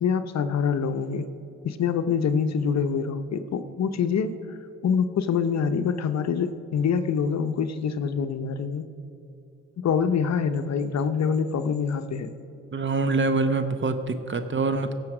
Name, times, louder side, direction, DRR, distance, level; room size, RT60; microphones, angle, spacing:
voice 1, 0.0-1.3 1.6-4.6 4.8-8.9 9.8-12.3, left 6 dB, 55° left, 10 dB, 0.8 m, -25 dB
voice 2, 12.7-14.9, right 3 dB, 35° right, 10 dB, 1.0 m, -25 dB
16.5 x 7.0 x 4.8 m, 2.8 s
supercardioid pair, 55°, 33 cm